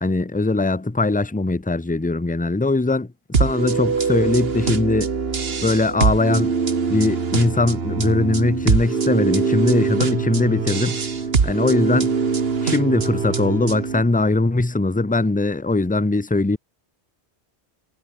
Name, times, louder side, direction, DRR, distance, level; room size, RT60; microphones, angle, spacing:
voice 1, 0.0-5.1 5.6-6.5 6.9-11.0 11.4-12.1 12.6-16.6, left 2 dB, 10° left, 0.6 m, -21 dB
sound 1, 3.3-14.0, right 5 dB, 60° right, 1.7 m, -23 dB
omnidirectional pair, 1.2 m